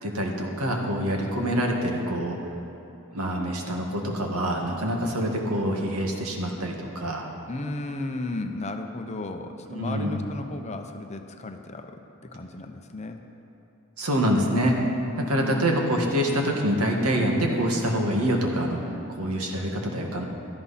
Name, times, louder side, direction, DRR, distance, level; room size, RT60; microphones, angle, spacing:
voice 1, 0.0-2.4 3.1-7.3 9.7-10.2 14.0-14.8 15.2-18.8 19.2-20.3, equal, 85° right, 1 dB, 1.8 m, -26 dB
voice 2, 7.5-12.0 12.3-13.2 15.1-15.8, left 2 dB, 30° left, 6 dB, 0.8 m, -34 dB
16.5 x 12.5 x 4.2 m, 2.7 s
head